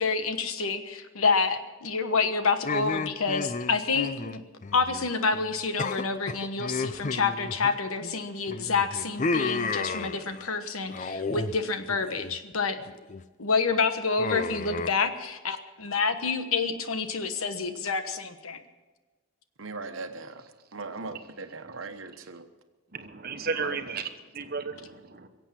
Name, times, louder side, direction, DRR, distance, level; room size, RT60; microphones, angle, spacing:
voice 1, 0.0-4.4 4.7-12.8 13.4-18.6, left 4 dB, 85° left, 9 dB, 1.2 m, -28 dB
sound 1, 2.6-5.1 5.3-5.5 5.8-8.1 8.5-10.5 10.9-11.5 11.9-12.4 12.8-13.2 14.2-14.9, left 3 dB, 35° left, 0.5 m, -32 dB
voice 2, 19.6-20.4 20.7-22.5 23.6-23.7, right 3 dB, 70° right, 8 dB, 1.1 m, -39 dB
voice 3, 22.9-25.3, right 4 dB, 45° right, 8 dB, 1.1 m, -34 dB
22.5 x 8.2 x 7.4 m, 1.3 s
head